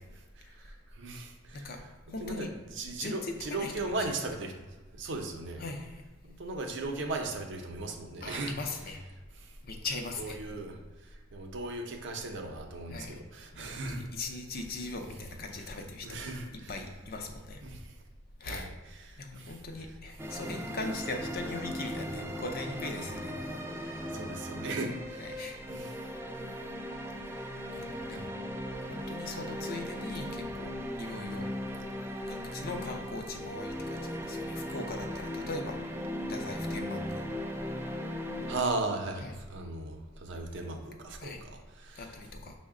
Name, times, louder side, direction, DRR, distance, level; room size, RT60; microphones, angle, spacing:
voice 1, 0.6-1.7 2.2-2.5 2.8-4.5 4.9-5.6 6.2-8.5 9.4-9.5 10.2-10.8 11.3-14.0 16.0-16.7 17.6-17.9 18.5-18.7 19.1-19.5 24.1-25.3 25.7-26.0 28.1-28.3 38.5-42.0, right 2 dB, 65° right, 3 dB, 0.6 m, -37 dB
voice 2, 2.1-2.5 3.0-4.1 5.6-6.0 8.2-9.0 9.6-10.4 12.9-13.2 13.5-16.3 16.7-17.6 18.4-18.7 19.2-23.3 23.7-24.0 25.2-25.6 27.4-28.3 28.9-30.7 31.0-31.4 32.3-35.7 36.3-37.2 39.2-39.4 41.2-41.4 42.0-42.5, left 2 dB, 50° left, 3 dB, 0.5 m, -40 dB
sound 1, 20.2-38.6, equal, 10° right, 0.3 m, -38 dB
5.6 x 2.1 x 3.6 m, 1.3 s
head